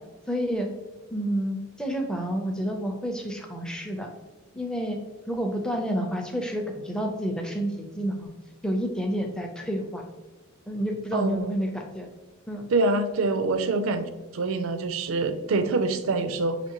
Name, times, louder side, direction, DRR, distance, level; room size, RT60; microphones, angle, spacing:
voice 1, 0.3-0.7 1.1-4.1 4.5-5.0 5.3-8.3 8.6-10.0 10.7-12.1 12.5-12.7 13.8-14.0, equal, 5° left, 2 dB, 0.5 m, -29 dB
voice 2, 11.1-11.6 12.7-14.1 14.3-16.6, right 3 dB, 70° right, 9 dB, 0.4 m, -25 dB
5.8 x 3.0 x 2.9 m, 1.2 s
head